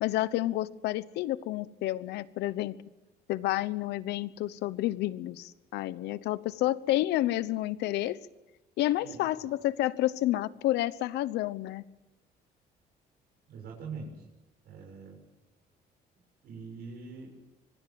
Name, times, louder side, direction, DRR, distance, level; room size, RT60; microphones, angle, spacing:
voice 1, 0.0-2.8 3.3-8.2 8.8-11.8, left 15 dB, 80° left, 17 dB, 1.0 m, -30 dB
voice 2, 13.5-14.3 14.6-15.2 16.4-17.3, right 4 dB, 70° right, -1 dB, 7.0 m, -43 dB
25.0 x 20.5 x 7.7 m, 0.99 s
cardioid pair, 110°, 17 cm